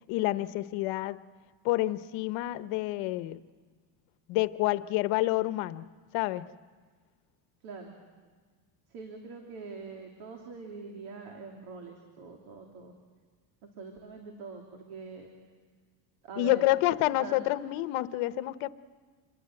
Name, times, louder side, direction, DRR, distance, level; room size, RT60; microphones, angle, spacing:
voice 1, 0.1-1.2 1.6-3.4 4.3-5.8 6.1-6.5 16.4-18.7, left 16 dB, 75° left, 13 dB, 1.1 m, -28 dB
voice 2, 7.6-7.9 8.9-12.9 13.8-15.3 16.2-16.6 17.2-17.4, right 4 dB, 70° right, 2 dB, 3.4 m, -43 dB
27.5 x 22.5 x 7.8 m, 1.5 s
cardioid pair, 150°, 50 cm